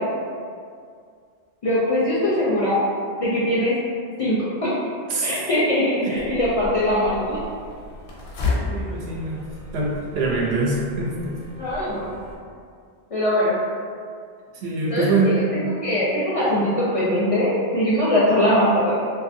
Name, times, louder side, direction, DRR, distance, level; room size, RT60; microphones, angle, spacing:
voice 1, 1.6-2.8 3.2-3.7 4.2-4.7 5.2-7.4 11.6-12.1 13.1-13.5 14.9-15.3 15.6-19.0, left 1 dB, 55° left, -8 dB, 0.4 m, -21 dB
voice 2, 5.1-5.4 6.0-6.1 8.7-9.5 9.7-11.3 14.6-15.4, right 3 dB, 85° right, -3 dB, 0.8 m, -24 dB
sound 1, 6.2-12.4, left 3 dB, 85° left, 0.9 m, -33 dB
2.7 x 2.3 x 2.5 m, 2.2 s
omnidirectional pair, 1.0 m